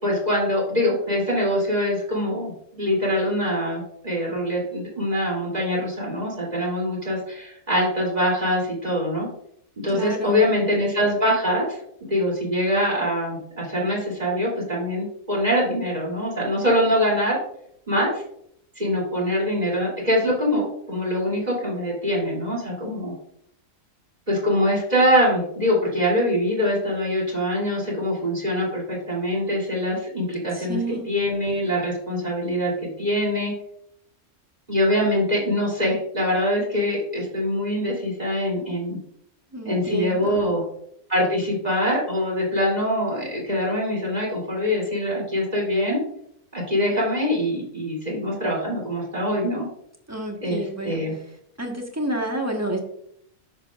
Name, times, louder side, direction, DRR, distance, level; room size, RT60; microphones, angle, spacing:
voice 1, 0.0-9.3 9.8-11.8 12.1-17.4 17.9-18.2 18.7-23.1 24.3-32.7 33.0-33.5 34.7-39.0 39.6-40.6 41.1-46.0 46.5-49.6 50.4-51.1, equal, 30° right, -4 dB, 3.2 m, -23 dB
voice 2, 9.9-10.5 30.5-31.1 39.5-40.4 50.1-51.0 51.6-52.8, right 1 dB, 10° right, 1 dB, 1.3 m, -29 dB
10.0 x 6.9 x 2.5 m, 0.70 s
omnidirectional pair, 1.5 m